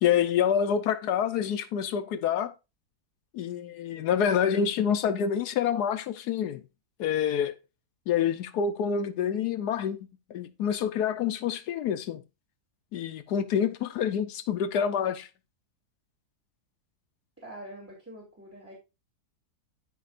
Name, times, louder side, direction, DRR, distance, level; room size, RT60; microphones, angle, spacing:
voice 1, 0.0-2.5 3.3-6.6 7.0-7.5 8.1-10.0 10.3-12.2 12.9-15.3, left 8 dB, 80° left, 1.3 m, -27 dB
voice 2, 17.4-18.7, right 1 dB, 10° right, 2.5 m, -45 dB
13.5 x 5.1 x 2.5 m
omnidirectional pair, 1.7 m